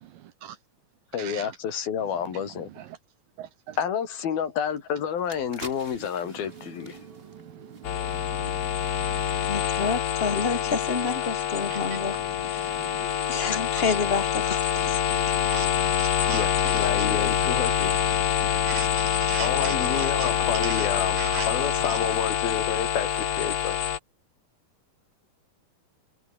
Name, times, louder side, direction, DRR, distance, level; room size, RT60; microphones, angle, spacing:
voice 1, 1.1-2.7 3.8-7.0 16.3-17.9 19.4-23.8, left 8 dB, 80° left, 4.9 m, -30 dB
voice 2, 3.4-3.8 7.0-7.4 7.7-7.9 8.1-8.8 9.1-9.5 11.7-12.0 12.6-13.0 13.8-14.0 15.1-17.1 18.4-20.3 20.6-20.9 21.2-21.5 21.9-22.0, right 10 dB, 75° right, 2.8 m, -39 dB
sound 1, 4.6-4.7 5.1-8.3 8.7-8.8, right 2 dB, 15° right, 4.7 m, -47 dB
sound 2, 5.6-21.3, right 3 dB, 45° right, 9.2 m, -50 dB
sound 3, 7.8-24.0, left 10 dB, 55° left, 1.6 m, -26 dB
voice 3, 9.4-12.8 13.3-15.0, left 4 dB, 20° left, 2.0 m, -29 dB
omnidirectional pair, 4.2 m